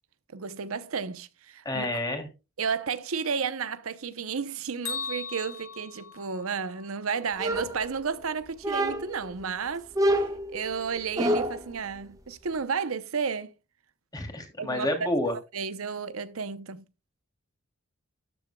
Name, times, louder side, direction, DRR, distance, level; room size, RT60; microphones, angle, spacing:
voice 1, 0.3-2.0 2.6-13.5 14.6-14.9 15.5-16.8, right 6 dB, 85° right, 0.8 m, -32 dB
voice 2, 1.6-2.3 14.1-15.3, left 1 dB, 20° left, 2.9 m, -29 dB
Bell, 4.8-6.9, left 5 dB, 80° left, 5.3 m, -38 dB
sound 1, 7.4-8.2 8.6-9.3 9.9-11.7, equal, 15° right, 1.3 m, -27 dB
12.5 x 9.9 x 2.3 m
head